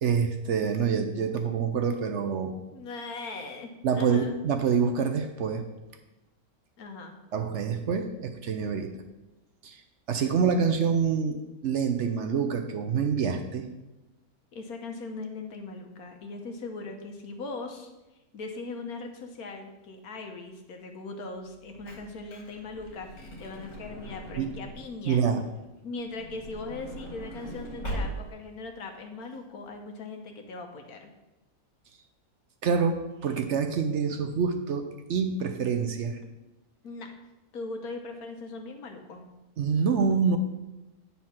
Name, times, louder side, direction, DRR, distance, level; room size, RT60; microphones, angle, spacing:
voice 1, 0.0-2.6 3.8-5.6 7.3-9.0 9.6-9.8 10.1-13.7 24.4-24.5 25.1-25.5 32.6-36.2 39.6-40.4, right 6 dB, 60° right, 6 dB, 0.8 m, -26 dB
voice 2, 2.7-4.4 6.8-7.2 10.5-10.8 14.5-17.9 18.3-25.2 25.8-31.1 36.8-37.1 37.5-39.3, left 3 dB, 80° left, 4 dB, 1.5 m, -39 dB
Truck / Door, 21.4-25.0 26.0-28.5 29.2-29.3 29.5-29.7, equal, 55° left, 2.2 m, -39 dB
9.2 x 4.2 x 5.7 m, 1.0 s
omnidirectional pair, 1.5 m